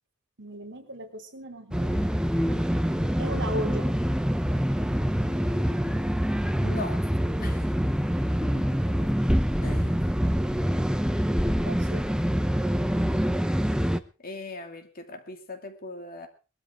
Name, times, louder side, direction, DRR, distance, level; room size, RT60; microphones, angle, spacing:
voice 1, 0.4-1.9 3.2-3.9 11.7-12.1, right 1 dB, 55° right, 3.5 m, -36 dB
sound 1, 1.7-14.0, equal, 5° right, 0.8 m, -25 dB
voice 2, 6.6-7.1 7.4-7.7 8.4-9.1 9.6-10.0 14.2-16.3, left 2 dB, 40° left, 2.7 m, -40 dB
21.0 x 13.5 x 3.8 m
head